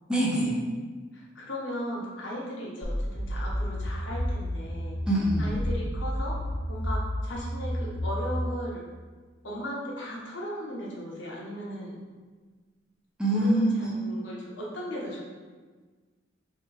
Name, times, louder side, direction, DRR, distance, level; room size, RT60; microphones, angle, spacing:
voice 1, 0.1-0.5 5.1-5.5 13.2-13.9, right 1 dB, 5° right, -6 dB, 0.8 m, -24 dB
voice 2, 1.1-5.0 5.4-6.4 6.7-8.8 9.4-11.9 13.2-15.2, equal, 80° left, -4 dB, 1.1 m, -37 dB
sound 1, 2.8-8.3, equal, 20° right, 1.4 m, -31 dB
3.7 x 2.9 x 4.7 m, 1.4 s
head